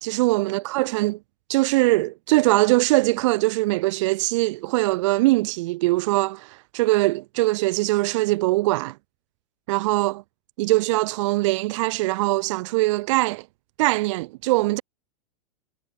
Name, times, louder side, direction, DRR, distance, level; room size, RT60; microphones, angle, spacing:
voice 1, 0.0-1.2 1.5-8.9 9.7-10.2 10.6-13.4 13.8-14.8, right 20 dB, 50° right, 1.1 m, -22 dB
figure-of-eight pair, 90°, 20 cm